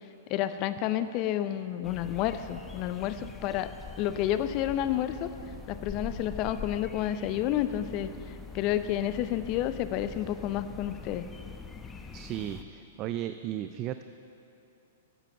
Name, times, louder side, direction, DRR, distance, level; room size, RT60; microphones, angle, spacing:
voice 1, 0.3-3.7 4.0-5.3 5.7-8.1 8.5-11.2, left 12 dB, 40° left, 12 dB, 0.5 m, -30 dB
sound 1, 1.8-12.6, left 4 dB, 15° left, 0.7 m, -44 dB
voice 2, 12.1-14.0, right 12 dB, 35° right, 10 dB, 0.3 m, -35 dB
11.0 x 7.4 x 6.5 m, 2.8 s
hypercardioid pair, 110°, 0 cm